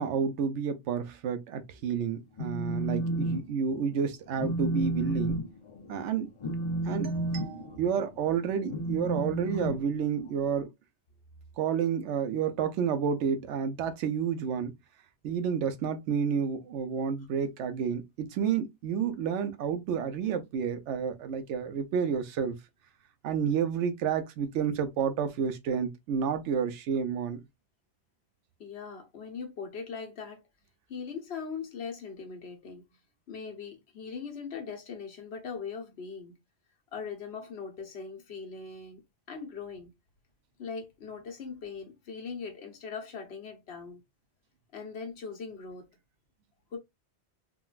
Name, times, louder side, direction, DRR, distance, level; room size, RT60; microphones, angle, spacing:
voice 1, 0.0-5.4 5.9-6.3 6.7-10.7 11.6-14.7 15.2-22.6 23.2-27.4, right 7 dB, 90° right, 0.9 m, -30 dB
Telephone, 2.2-3.4 3.7-4.0 4.4-10.5, right 1 dB, 40° left, 0.5 m, -32 dB
voice 2, 28.6-30.4 30.9-33.0 33.3-36.3 36.9-39.0 39.3-39.9 40.6-44.0 44.7-45.9 46.7-46.8, left 5 dB, 70° left, 1.1 m, -40 dB
3.7 x 2.2 x 2.3 m
omnidirectional pair, 1.2 m